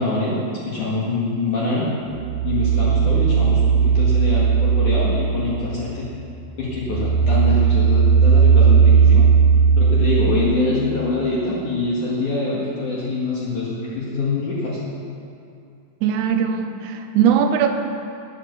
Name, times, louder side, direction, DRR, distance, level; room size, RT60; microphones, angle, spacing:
voice 1, 0.0-1.9 2.4-6.1 6.6-9.2 9.8-14.8, left 2 dB, 55° left, -6 dB, 3.1 m, -24 dB
sound 1, 2.2-6.1 6.4-11.0, right 6 dB, 90° right, 2.9 m, -17 dB
voice 2, 16.0-17.7, right 8 dB, 70° right, 5 dB, 2.0 m, -19 dB
18.0 x 9.5 x 6.8 m, 2.5 s
omnidirectional pair, 4.5 m